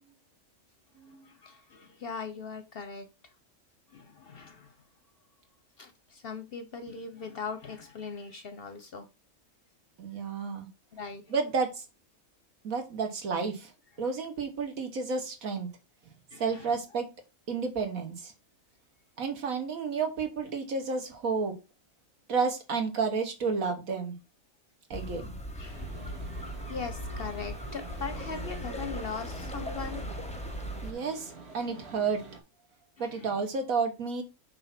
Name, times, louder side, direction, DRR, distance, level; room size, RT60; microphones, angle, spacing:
voice 1, 1.0-3.1 3.9-4.7 5.8-9.1 10.9-11.3 16.3-16.7 25.5-25.9 26.7-30.0 33.0-33.3, left 5 dB, 55° left, 0.7 m, -40 dB
voice 2, 10.0-10.7 11.3-11.8 12.6-13.7 14.0-15.7 16.4-17.1 17.5-18.3 19.2-21.6 22.3-24.2 24.9-25.3 30.8-32.2 33.0-34.2, right 5 dB, 75° right, 1.7 m, -31 dB
sound 1, 24.9-30.9, equal, 5° left, 0.6 m, -38 dB
sound 2, 25.6-32.4, right 5 dB, 50° right, 1.6 m, -47 dB
7.6 x 2.8 x 5.8 m
omnidirectional pair, 1.5 m